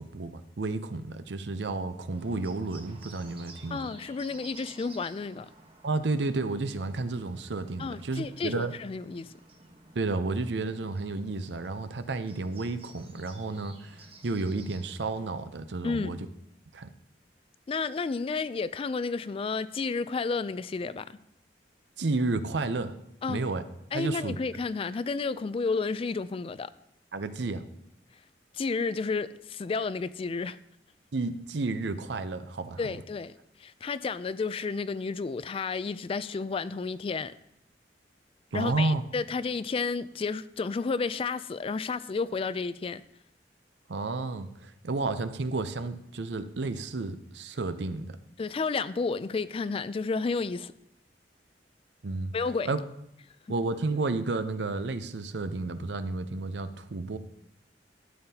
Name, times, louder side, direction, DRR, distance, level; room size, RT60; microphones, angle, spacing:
voice 1, 0.0-3.9 5.8-8.7 9.9-16.2 16.7-16.9 22.0-22.9 23.3-23.6 23.9-24.4 27.1-27.6 31.1-32.9 38.5-39.0 43.9-48.2 52.0-52.3 52.7-52.8 53.5-57.2, right 3 dB, 75° right, 0.6 m, -31 dB
Bird, 2.1-15.3, right 3 dB, 35° right, 1.1 m, -53 dB
voice 2, 3.7-5.5 7.8-9.3 15.8-16.3 17.7-21.1 23.2-23.4 23.9-26.7 28.5-30.6 32.8-33.3 33.6-37.3 38.5-43.0 48.4-50.7 52.3-52.7, left 4 dB, 30° left, 0.3 m, -31 dB
12.5 x 8.7 x 2.8 m
head